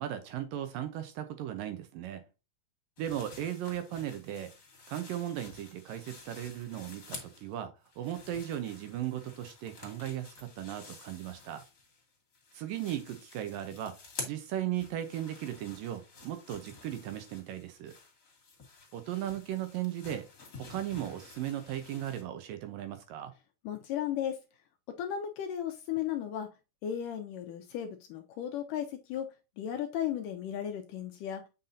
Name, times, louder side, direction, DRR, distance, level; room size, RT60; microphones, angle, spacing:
voice 1, 0.0-2.2 3.0-4.5 4.9-7.7 8.0-11.6 12.5-13.9 14.3-17.9 18.9-20.3 20.6-23.3, right 12 dB, 75° right, 2.2 m, -37 dB
sound 1, 3.0-7.5 7.8-12.0 12.3-22.2, left 4 dB, 30° left, 2.3 m, -50 dB
voice 2, 23.6-24.4 24.9-26.5 26.8-29.3 29.6-31.4, left 10 dB, 80° left, 1.9 m, -35 dB
7.6 x 5.8 x 2.6 m
omnidirectional pair, 4.5 m